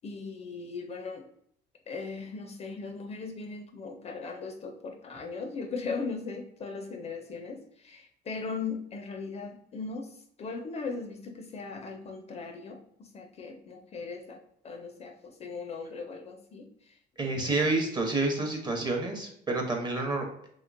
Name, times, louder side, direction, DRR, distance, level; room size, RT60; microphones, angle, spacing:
voice 1, 0.0-1.3 1.9-17.5 18.4-18.5, left 4 dB, 35° left, 5 dB, 0.4 m, -39 dB
voice 2, 17.2-20.3, right 2 dB, 25° right, 2 dB, 0.7 m, -29 dB
2.9 x 2.8 x 2.5 m, 0.69 s
cardioid pair, 95°, 18 cm